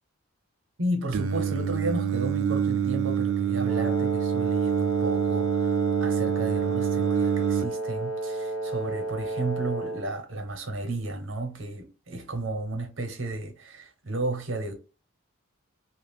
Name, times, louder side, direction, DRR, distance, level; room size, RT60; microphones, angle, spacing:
voice 1, 0.8-5.7 6.0-14.7, right 2 dB, 65° right, 0.7 m, -33 dB
Singing, 1.1-7.7, right 8 dB, 85° right, 0.4 m, -26 dB
Wind instrument woodwind instrument, 3.7-10.1, right 2 dB, 15° left, 0.5 m, -32 dB
2.4 x 2.1 x 3.3 m
head